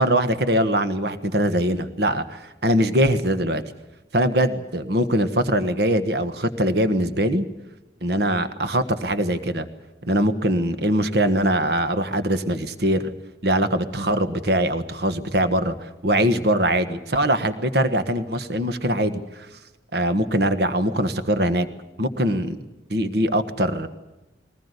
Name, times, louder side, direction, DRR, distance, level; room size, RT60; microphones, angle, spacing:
voice 1, 0.0-3.6 4.1-7.4 8.0-9.7 10.0-13.1 13.4-19.5 19.9-21.7 22.0-22.6 22.9-23.9, right 1 dB, 65° right, 10 dB, 1.4 m, -22 dB
22.0 x 19.5 x 8.2 m, 1.0 s
head